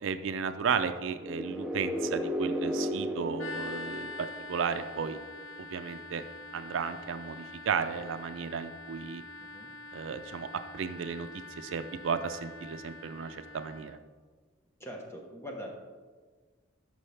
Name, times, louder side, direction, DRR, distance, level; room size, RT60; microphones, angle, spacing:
voice 1, 0.0-4.1 4.5-5.2 5.6-6.2 6.5-9.2 9.9-10.5 10.7-11.3 11.6-14.0, right 6 dB, 75° right, 10 dB, 0.4 m, -34 dB
sound 1, 1.1-4.9, equal, 5° right, 0.6 m, -34 dB
sound 2, 3.4-14.0, left 2 dB, 80° left, 0.5 m, -45 dB
voice 2, 9.4-9.7 14.8-15.7, equal, 15° left, 0 dB, 1.1 m, -42 dB
12.5 x 5.4 x 3.3 m, 1.5 s
head